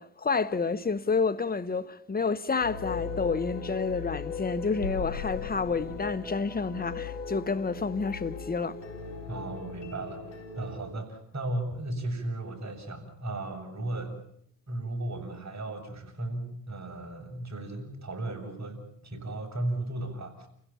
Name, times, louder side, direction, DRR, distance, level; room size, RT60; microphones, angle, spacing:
voice 1, 0.0-8.8, left 4 dB, 20° left, 1.3 m, -29 dB
sound 1, 2.6-10.8, left 5 dB, 85° left, 4.9 m, -37 dB
voice 2, 9.3-14.2 14.7-20.5, right 1 dB, 35° right, 7.6 m, -35 dB
30.0 x 16.5 x 7.2 m
hypercardioid pair, 60°, 49 cm